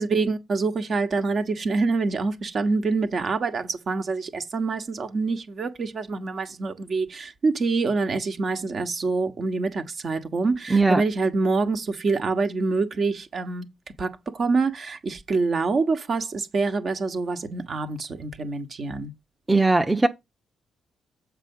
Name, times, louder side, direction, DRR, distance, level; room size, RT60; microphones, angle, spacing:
voice 1, 0.0-13.7 14.0-19.1, right 3 dB, 50° right, 1.3 m, -26 dB
voice 2, 19.5-20.1, right 3 dB, 20° right, 0.8 m, -19 dB
7.4 x 4.8 x 5.5 m
hypercardioid pair, 45°, 0 cm